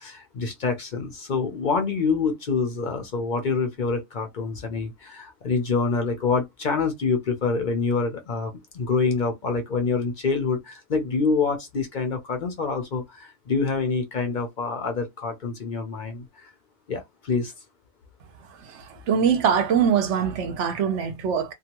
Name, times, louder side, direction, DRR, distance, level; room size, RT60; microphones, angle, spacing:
voice 1, 0.0-16.5 16.9-17.5, left 4 dB, 50° left, 0.6 m, -26 dB
voice 2, 18.7-21.5, right 7 dB, 65° right, 1.0 m, -23 dB
2.7 x 2.3 x 2.9 m
omnidirectional pair, 1.4 m